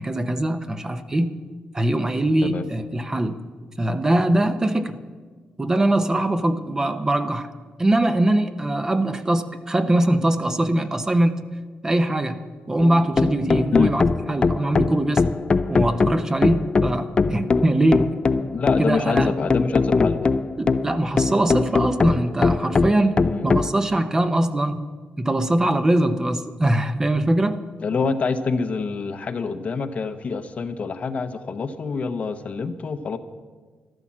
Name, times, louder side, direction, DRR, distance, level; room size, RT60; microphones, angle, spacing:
voice 1, 0.0-1.4 1.7-3.4 3.8-5.0 5.6-7.5 7.8-11.4 11.8-12.4 12.7-14.0 14.3-15.2 15.7-18.2 18.8-19.3 20.6-24.9 25.2-27.6, right 1 dB, 15° right, 9 dB, 0.7 m, -22 dB
Deep house loop, 12.8-23.7, left 4 dB, 25° left, 0.4 m, -21 dB
voice 2, 18.5-20.3 23.2-23.5 27.8-33.2, left 4 dB, 45° left, 10 dB, 0.8 m, -26 dB
13.0 x 12.5 x 7.3 m, 1.4 s
wide cardioid pair, 145°, 3 cm